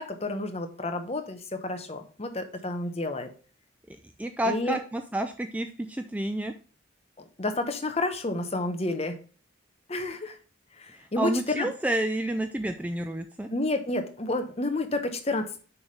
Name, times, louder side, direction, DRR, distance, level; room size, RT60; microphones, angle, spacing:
voice 1, 0.0-3.3 4.5-4.8 7.2-9.2 9.9-10.4 10.8-11.7 13.5-15.6, left 2 dB, 30° left, 6 dB, 0.9 m, -30 dB
voice 2, 3.9-6.5 11.2-13.5, right 1 dB, 5° right, 6 dB, 0.3 m, -30 dB
7.0 x 3.5 x 5.4 m, 0.38 s
head